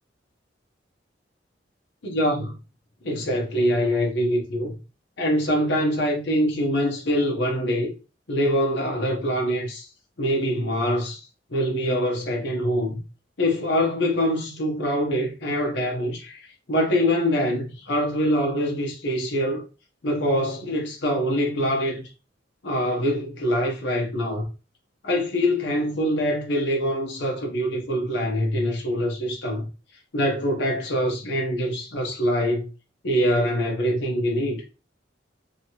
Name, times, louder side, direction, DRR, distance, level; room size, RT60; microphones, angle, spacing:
voice 1, 2.0-2.6 3.0-4.8 5.2-7.9 8.3-9.9 10.2-11.2 11.5-13.0 13.4-19.6 20.0-22.1 22.6-24.5 25.0-29.6 30.1-32.7 33.0-34.6, equal, 70° left, 0.7 m, -24 dB
2.9 x 2.8 x 2.7 m
head